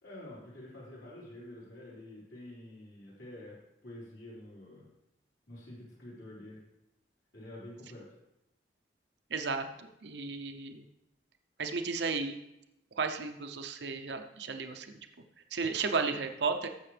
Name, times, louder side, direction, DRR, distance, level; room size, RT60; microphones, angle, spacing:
voice 1, 0.0-3.6 3.8-4.8 5.5-6.6 7.3-8.1, left 1 dB, 70° left, -6 dB, 4.4 m, -48 dB
voice 2, 9.3-10.8 11.6-12.4 13.0-15.0 15.5-16.7, right 4 dB, 70° right, 6 dB, 0.7 m, -34 dB
15.0 x 6.7 x 3.4 m, 0.86 s
head